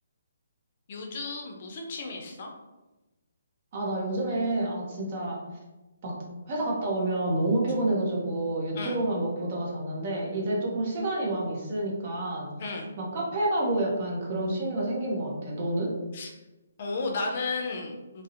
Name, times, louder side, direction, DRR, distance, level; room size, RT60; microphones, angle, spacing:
voice 1, 0.9-2.5 8.7-9.0 12.6-12.9 16.1-16.3 16.8-18.2, left 3 dB, 45° left, 1 dB, 0.4 m, -33 dB
voice 2, 3.7-5.4 6.0-6.2 6.4-12.5 13.0-15.9, right 1 dB, 40° right, -2 dB, 0.7 m, -29 dB
2.6 x 2.0 x 2.4 m, 1.1 s
hypercardioid pair, 150°, 0 cm